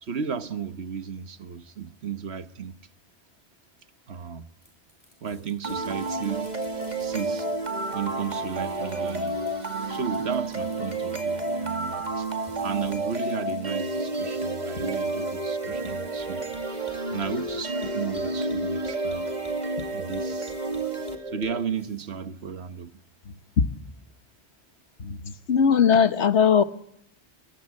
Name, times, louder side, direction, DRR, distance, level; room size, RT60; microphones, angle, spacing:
voice 1, 0.0-2.8 4.1-4.5 5.2-6.5 7.0-7.5 7.9-9.4 9.9-12.3 12.6-16.5 17.1-19.3 19.9-20.5 21.3-23.0, right 7 dB, 70° right, 1.4 m, -34 dB
sound 1, 4.6-22.0, equal, 25° left, 7.5 m, -53 dB
sound 2, 5.6-21.6, right 2 dB, 40° right, 2.2 m, -30 dB
voice 2, 25.0-26.6, left 7 dB, 85° left, 1.6 m, -20 dB
24.0 x 22.0 x 8.4 m
omnidirectional pair, 1.1 m